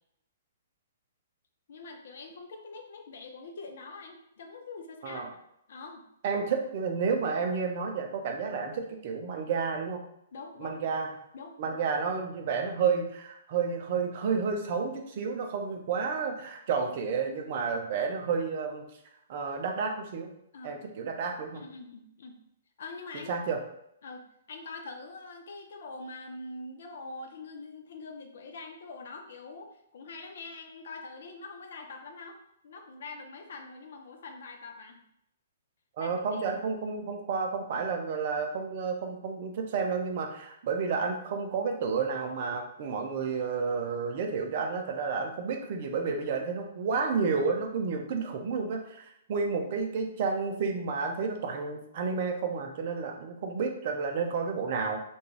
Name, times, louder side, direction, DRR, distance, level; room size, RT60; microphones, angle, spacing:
voice 1, 1.7-5.3 5.7-6.0 10.3-10.8 11.3-11.8 20.5-20.8 21.5-22.4 22.8-23.3 24.0-32.4 32.6-35.0 36.0-36.4, left 3 dB, 55° left, 4 dB, 0.4 m, -44 dB
voice 2, 6.2-10.0 10.6-11.1 11.6-18.9 19.3-20.3 20.6-21.6 23.3-23.6 36.0-55.0, right 5 dB, 45° right, 3 dB, 0.4 m, -31 dB
2.3 x 2.2 x 3.1 m, 0.77 s
figure-of-eight pair, 115°, 0 cm